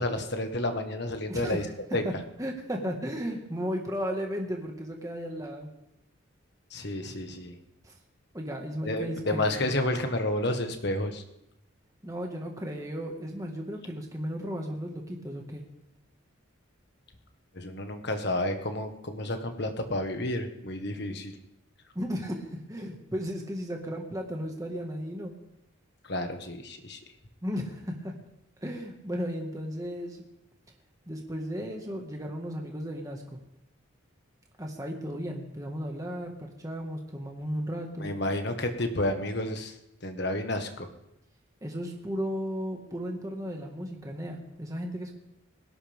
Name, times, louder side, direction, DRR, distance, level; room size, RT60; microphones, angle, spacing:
voice 1, 0.0-1.7 1.9-2.0 6.7-7.6 8.8-11.2 17.5-21.3 26.0-27.0 38.0-39.7 40.0-40.9, left 1 dB, 50° left, 6 dB, 1.5 m, -30 dB
voice 2, 1.3-1.6 2.0-2.1 2.4-5.7 7.8-8.0 8.3-9.6 12.0-15.6 22.0-25.3 27.4-28.2 28.6-30.2 31.1-33.4 34.6-38.1 41.6-45.1, equal, 15° right, 1 dB, 1.7 m, -35 dB
20.0 x 17.5 x 3.6 m, 0.84 s
head